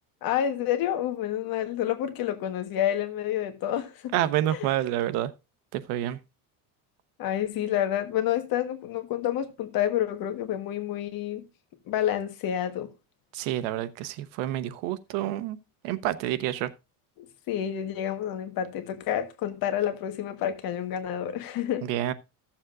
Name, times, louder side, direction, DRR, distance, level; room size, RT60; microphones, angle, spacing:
voice 1, 0.2-4.1 7.2-11.4 11.9-12.9 17.2-21.9, left 11 dB, 55° left, 1.5 m, -29 dB
voice 2, 4.1-5.3 5.7-6.2 13.3-15.6 15.8-16.7 21.8-22.1, right 13 dB, 90° right, 1.0 m, -28 dB
15.0 x 7.3 x 2.5 m
cardioid pair, 155°, 42 cm